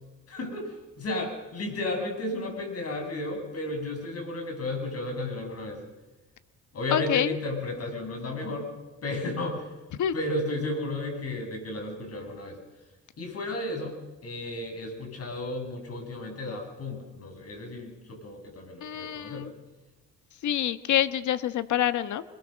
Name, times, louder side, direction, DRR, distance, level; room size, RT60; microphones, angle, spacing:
voice 1, 0.3-5.8 6.7-8.7 9.0-9.7 10.1-12.6 13.2-14.0 14.2-19.5, left 2 dB, 50° left, 3 dB, 7.0 m, -33 dB
voice 2, 6.9-7.3 10.0-10.1 18.8-19.5 20.4-22.2, left 11 dB, 75° left, 12 dB, 1.4 m, -26 dB
26.0 x 21.5 x 6.5 m, 1.2 s
cardioid pair, 90°, 30 cm